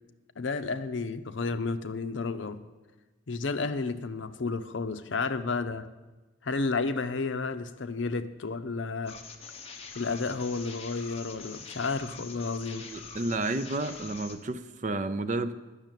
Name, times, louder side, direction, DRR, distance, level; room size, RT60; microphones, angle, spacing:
voice 1, 0.4-2.6 3.3-5.9 6.4-9.2 9.9-12.9, left 4 dB, 65° left, 11 dB, 0.6 m, -31 dB
sound 1, 9.1-14.3, left 5 dB, 30° left, 1.0 m, -45 dB
voice 2, 12.8-15.5, right 2 dB, 35° right, 11 dB, 0.5 m, -31 dB
10.5 x 6.5 x 9.0 m, 1.2 s
head